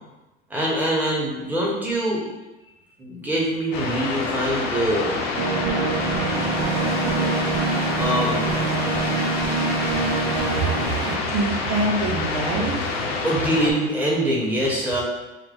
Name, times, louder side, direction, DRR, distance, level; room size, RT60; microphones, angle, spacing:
voice 1, 0.5-2.2 3.0-5.2 8.0-8.5 13.1-15.0, right 1 dB, 5° right, -5 dB, 1.3 m, -24 dB
sound 1, 3.7-13.7, left 3 dB, 80° left, 0.8 m, -27 dB
sound 2, 5.4-11.2, right 4 dB, 45° right, 0.6 m, -25 dB
voice 2, 11.1-12.8, right 2 dB, 80° right, -1 dB, 0.9 m, -25 dB
4.7 x 2.2 x 3.8 m, 1.1 s
hypercardioid pair, 90°, 31 cm